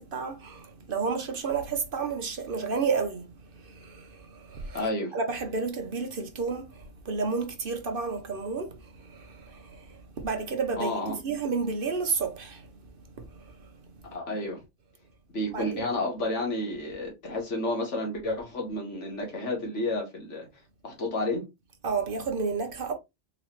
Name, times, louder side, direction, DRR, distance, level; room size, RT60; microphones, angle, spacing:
voice 1, 0.0-12.7 13.2-13.7 15.5-15.9 21.8-22.9, right 5 dB, 55° right, 0.9 m, -31 dB
voice 2, 4.7-5.1 10.8-11.1 14.1-14.6 15.3-20.5 20.8-21.4, left 1 dB, 90° left, 1.8 m, -31 dB
4.0 x 3.0 x 3.0 m
omnidirectional pair, 1.2 m